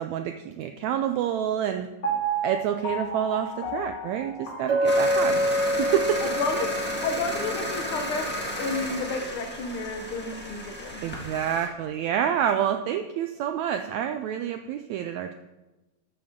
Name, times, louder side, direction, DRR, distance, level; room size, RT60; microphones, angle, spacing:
voice 1, 0.0-1.9 2.4-5.5 5.8-6.2 11.0-15.3, right 9 dB, 85° right, 7 dB, 1.6 m, -28 dB
Piano, 2.0-6.1 6.6-6.7, right 3 dB, 50° left, 1.0 m, -33 dB
Chink clink, 4.7-8.7, equal, 50° right, 1.4 m, -27 dB
sound 1, 4.8-11.7, equal, 10° left, 0.4 m, -33 dB
voice 2, 6.2-6.7 7.0-8.3 8.6-11.0, left 3 dB, 70° left, 6 dB, 1.2 m, -31 dB
12.5 x 8.8 x 3.7 m, 1.1 s
omnidirectional pair, 3.7 m